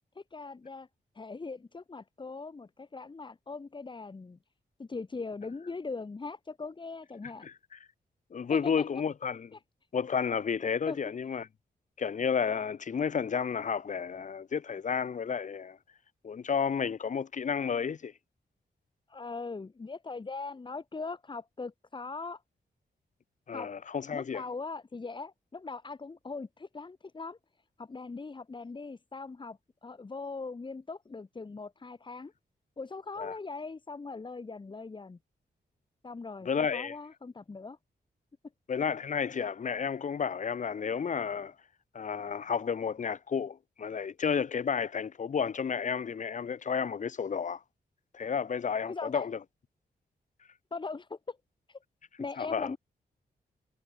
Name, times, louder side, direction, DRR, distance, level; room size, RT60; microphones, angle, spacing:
voice 1, 0.1-0.9 1.1-4.4 4.8-7.5 8.5-8.9 9.5-9.6 10.9-11.0 19.1-22.4 23.5-23.7 24.1-27.4 27.8-32.3 32.8-35.2 36.0-37.8 48.8-49.2 50.7-51.4 51.7-51.8 52.2-52.8, left 4 dB, 25° left, 2.0 m, -40 dB
voice 2, 7.4-7.8 8.3-9.5 9.9-11.5 12.0-15.8 16.2-18.1 23.5-24.4 33.2-33.3 36.4-37.0 38.7-41.5 41.9-47.6 48.1-49.4 52.4-52.7, left 6 dB, 45° left, 1.0 m, -31 dB
wide cardioid pair, 155°, 17 cm